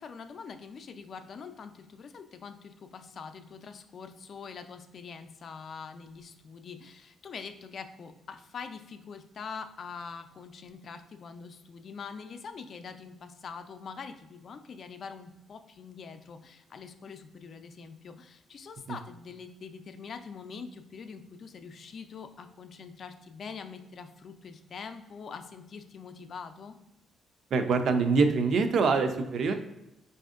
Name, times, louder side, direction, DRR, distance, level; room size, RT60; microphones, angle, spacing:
voice 1, 0.0-26.8, left 5 dB, 55° left, 8 dB, 0.4 m, -44 dB
voice 2, 27.5-29.5, right 4 dB, 60° right, 7 dB, 0.4 m, -24 dB
4.1 x 2.6 x 2.4 m, 0.93 s
cardioid pair, 90°, 0 cm